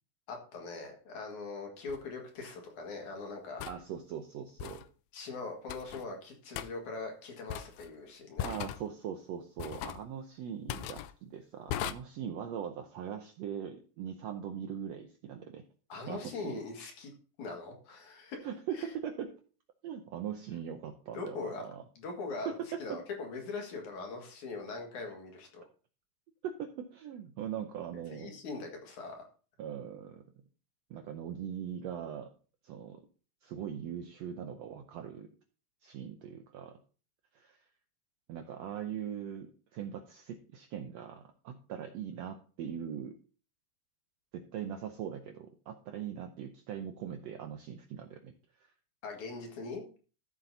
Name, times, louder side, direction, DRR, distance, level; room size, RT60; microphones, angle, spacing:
voice 1, 0.3-3.6 5.1-8.5 15.9-17.1 17.4-18.5 18.7-18.8 21.1-21.6 22.0-22.5 22.8-25.6 28.1-29.2 49.0-49.8, left 3 dB, 65° left, 2 dB, 3.2 m, -41 dB
sound 1, 1.9-2.0 3.6-3.8 4.6-4.9 5.7-6.0 6.6-6.7 7.5-7.9 8.4-8.8 9.6-10.0 10.7-11.1 11.7-11.9, left 12 dB, 85° left, 1.6 m, -38 dB
voice 2, 3.7-4.9 8.4-15.6 16.1-16.6 18.4-19.4 19.8-21.8 22.4-23.0 26.4-28.4 29.6-30.2 30.9-32.3 32.6-33.0 33.4-35.3 35.8-36.8 37.3-37.7 38.3-43.1 44.3-48.7, right 8 dB, 80° right, 5 dB, 1.5 m, -41 dB
13.5 x 7.3 x 2.7 m, 0.38 s
omnidirectional pair, 3.7 m